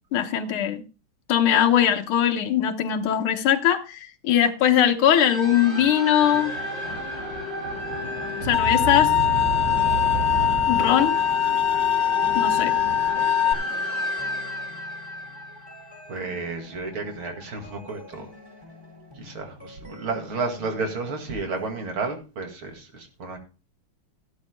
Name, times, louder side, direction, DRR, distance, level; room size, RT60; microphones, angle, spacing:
voice 1, 0.1-0.8 1.3-6.5 8.4-9.1 10.7-11.2 12.3-12.7, left 10 dB, 80° left, 2.0 m, -21 dB
sound 1, 5.1-16.3, right 1 dB, 55° right, 5.9 m, -31 dB
sound 2, 6.3-22.1, left 3 dB, 10° right, 5.2 m, -48 dB
sound 3, 8.5-13.5, left 10 dB, 65° left, 1.5 m, -22 dB
voice 2, 16.1-18.3 19.2-23.4, right 3 dB, 75° right, 3.0 m, -32 dB
15.5 x 12.0 x 2.2 m
omnidirectional pair, 2.3 m